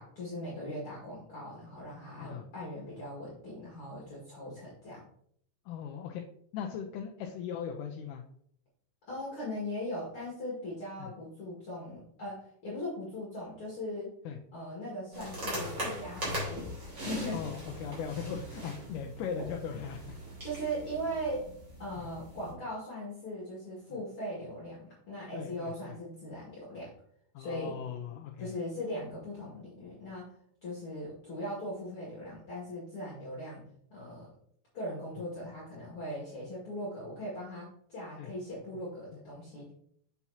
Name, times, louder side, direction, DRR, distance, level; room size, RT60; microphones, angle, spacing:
voice 1, 0.0-5.0 9.1-14.1 14.5-16.7 17.0-17.4 20.4-21.5 21.8-26.9 27.4-27.8 28.4-30.3 30.6-33.6 33.9-34.3 34.7-39.7, equal, 45° left, -6 dB, 2.4 m, -39 dB
voice 2, 5.7-6.2 6.5-8.2 11.0-11.1 14.3-14.4 17.3-20.2 22.0-22.1 25.3-25.9 27.3-28.5 38.2-38.3, left 7 dB, 85° left, 2 dB, 2.2 m, -39 dB
sound 1, 15.1-22.5, equal, 25° right, 2.7 m, -40 dB
7.1 x 6.0 x 2.8 m, 0.67 s
omnidirectional pair, 3.7 m